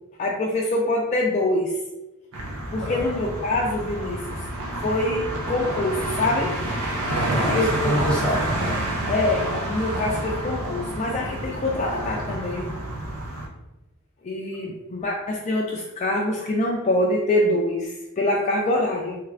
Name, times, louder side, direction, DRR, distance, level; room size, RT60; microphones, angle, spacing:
voice 1, 0.2-1.7 2.7-4.4 4.8-6.6 7.5-8.0 9.1-12.7 14.2-19.2, left 1 dB, 35° left, -2 dB, 0.3 m, -25 dB
sound 1, 2.3-13.5, right 1 dB, 80° right, 0.6 m, -28 dB
voice 2, 7.0-8.8, equal, 5° left, -5 dB, 1.0 m, -27 dB
3.2 x 2.4 x 3.2 m, 1.0 s
head